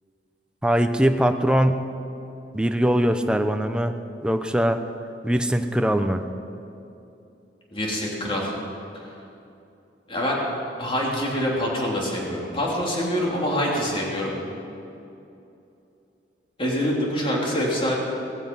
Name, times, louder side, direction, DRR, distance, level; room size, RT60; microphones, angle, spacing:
voice 1, 0.6-1.8 2.5-3.9 4.2-4.8 5.2-6.2, equal, 5° right, 7 dB, 0.7 m, -21 dB
voice 2, 7.7-8.5 8.9-9.1 10.1-10.4 10.8-14.3 16.6-18.0, equal, 30° left, -3 dB, 3.2 m, -25 dB
17.5 x 15.0 x 5.5 m, 2.8 s
head